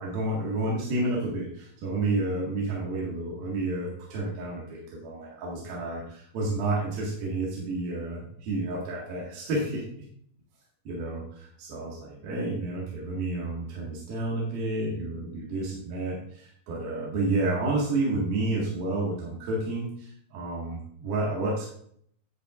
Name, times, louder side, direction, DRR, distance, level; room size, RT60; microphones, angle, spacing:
voice 1, 0.0-9.8 10.9-21.7, right 2 dB, 75° right, -4 dB, 3.7 m, -30 dB
11.5 x 7.7 x 2.5 m, 0.63 s
omnidirectional pair, 4.3 m